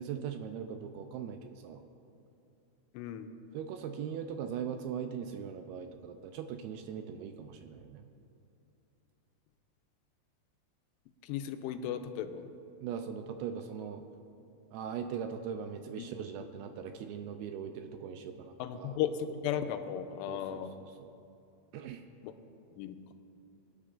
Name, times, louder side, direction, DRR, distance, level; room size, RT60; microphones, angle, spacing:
voice 1, 0.0-1.8 3.5-8.1 12.8-14.0 14.7-19.0 20.3-21.1 21.7-22.0, right 7 dB, 85° right, 7 dB, 2.3 m, -40 dB
voice 2, 2.9-3.3 11.2-12.5 16.0-16.1 16.4-16.5 18.6-20.7 22.2-22.3 22.8-23.0, left 9 dB, 90° left, 8 dB, 2.8 m, -35 dB
22.5 x 10.0 x 2.5 m, 2.6 s
omnidirectional pair, 4.9 m